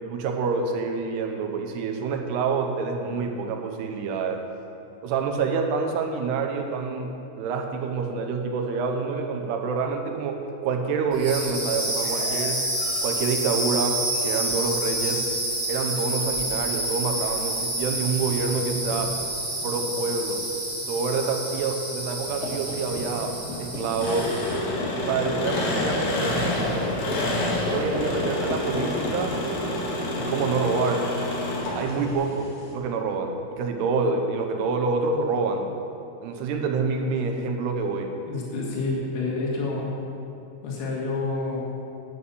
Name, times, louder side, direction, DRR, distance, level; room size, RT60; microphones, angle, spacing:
voice 1, 0.0-4.4 5.0-12.6 13.0-15.3 15.7-19.2 19.6-20.5 20.9-24.4 25.0-26.5 27.7-29.4 30.1-31.1 31.7-35.7 36.2-38.1, right 4 dB, 80° right, 4 dB, 2.9 m, -27 dB
sound 1, 11.1-24.7, right 1 dB, 20° right, 1.3 m, -29 dB
sound 2, 22.3-32.7, left 1 dB, 30° left, 1.9 m, -35 dB
Engine, 24.0-32.1, left 1 dB, 80° left, 4.1 m, -28 dB
voice 2, 38.3-39.9 40.6-41.6, left 3 dB, 60° left, -3 dB, 3.5 m, -28 dB
11.5 x 8.9 x 6.9 m, 2.8 s
omnidirectional pair, 4.8 m